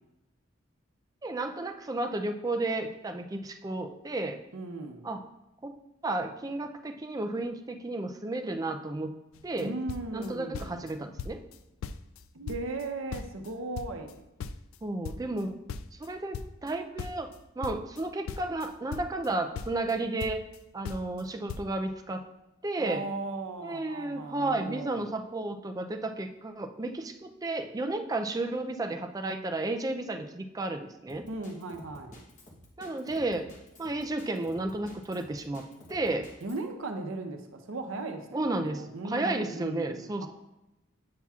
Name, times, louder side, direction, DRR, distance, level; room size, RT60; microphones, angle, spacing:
voice 1, 1.2-4.4 5.0-5.2 5.6-5.8 6.0-9.2 9.4-9.7 10.1-11.4 14.8-15.6 16.0-17.3 17.6-20.4 20.7-22.2 22.6-23.1 23.6-31.3 32.8-33.5 33.8-35.6 35.9-36.3 38.3-40.3, right 2 dB, 20° right, 5 dB, 0.4 m, -32 dB
voice 2, 4.5-5.0 9.6-10.8 12.3-14.2 22.8-25.1 31.3-32.2 36.4-40.3, right 2 dB, 80° right, 5 dB, 0.7 m, -37 dB
sound 1, 9.3-9.6 9.9-10.9 11.2-11.6 11.8-13.5 13.7-16.7 17.0-19.3 19.5-20.6 20.8-21.2 21.5-21.7, left 5 dB, 85° left, 0.3 m, -39 dB
Drum kit, 31.1-36.6, left 1 dB, 40° left, 1.1 m, -52 dB
8.5 x 5.7 x 2.4 m, 0.93 s
head